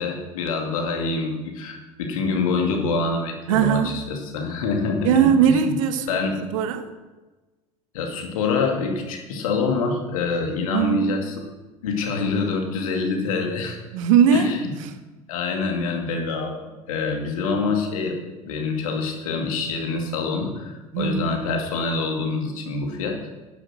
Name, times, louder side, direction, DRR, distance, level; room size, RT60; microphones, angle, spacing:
voice 1, 0.0-5.7 6.1-6.4 7.9-11.4 11.8-13.8 14.3-14.7 15.3-18.2 18.4-23.2, left 4 dB, 70° left, 2 dB, 2.4 m, -26 dB
voice 2, 3.5-4.0 5.0-6.1 6.5-6.9 10.7-11.2 13.9-14.9 20.9-21.3, right 8 dB, 65° right, 9 dB, 1.4 m, -20 dB
11.5 x 10.0 x 6.5 m, 1.2 s
figure-of-eight pair, 70°, 19 cm